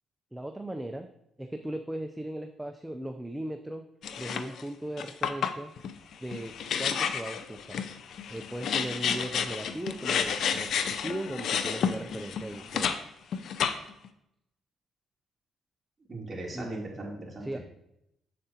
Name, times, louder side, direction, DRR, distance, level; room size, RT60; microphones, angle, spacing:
voice 1, 0.3-1.1 1.4-3.8 4.2-5.7 6.2-6.5 6.8-7.8 8.3-12.9 16.5-16.9 17.4-17.6, right 1 dB, 10° right, 5 dB, 0.5 m, -37 dB
sound 1, 4.0-4.6 5.0-13.0 13.3-14.1, left 7 dB, 70° left, 0.5 m, -31 dB
voice 2, 16.1-17.6, right 2 dB, 25° right, -4 dB, 2.9 m, -39 dB
7.9 x 7.4 x 2.8 m, 0.81 s
cardioid pair, 90°, 0 cm